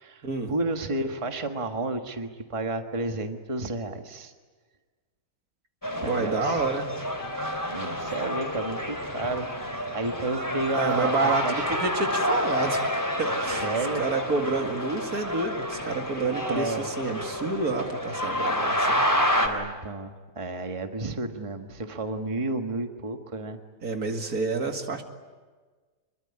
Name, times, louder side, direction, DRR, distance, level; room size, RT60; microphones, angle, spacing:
voice 1, 0.0-4.3 6.0-6.6 7.7-11.7 13.5-14.1 16.5-16.9 19.3-23.6, right 2 dB, 20° right, 5 dB, 1.5 m, -32 dB
sound 1, 5.8-19.5, equal, 10° left, 3.3 m, -29 dB
voice 2, 6.0-6.9 10.7-12.8 13.2-13.7 14.0-19.0 23.8-25.0, right 3 dB, 65° right, 5 dB, 2.6 m, -29 dB
27.0 x 22.5 x 9.8 m, 1.4 s
omnidirectional pair, 1.7 m